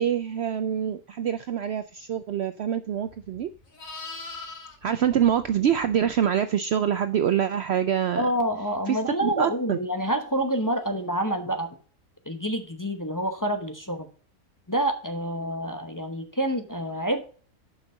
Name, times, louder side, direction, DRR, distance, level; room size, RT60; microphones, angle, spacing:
voice 1, 0.0-3.5 4.8-8.3 8.9-9.8, right 9 dB, 65° right, 11 dB, 0.7 m, -25 dB
Livestock farm animals working animals, 3.0-6.3 10.7-10.9, left 3 dB, 70° left, 2.3 m, -42 dB
voice 2, 8.2-11.7 12.3-14.1 14.7-17.2, right 1 dB, 15° left, 5 dB, 0.9 m, -27 dB
6.9 x 5.7 x 6.8 m, 0.41 s
omnidirectional pair, 1.5 m